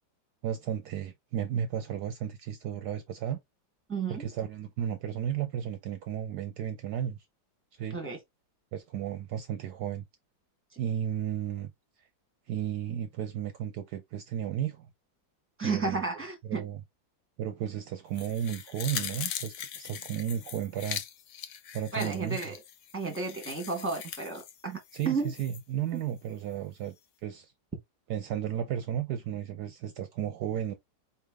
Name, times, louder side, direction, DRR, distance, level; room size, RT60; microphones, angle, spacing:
voice 1, 0.4-3.4 4.1-7.2 7.7-8.0 8.7-10.0 10.8-11.7 12.0-12.1 12.5-14.9 15.6-16.8 17.4-21.0 21.7-22.4 24.9-27.0 27.2-27.5 28.1-30.7, right 9 dB, 70° right, 1.1 m, -34 dB
voice 2, 3.9-4.3 7.9-8.2 15.6-16.6 21.9-22.6 22.9-24.8 25.0-25.3, right 4 dB, 5° right, 1.5 m, -32 dB
sound 1, 18.1-25.6 26.0-26.1, left 9 dB, 60° left, 0.9 m, -41 dB
4.5 x 3.5 x 3.4 m
omnidirectional pair, 2.0 m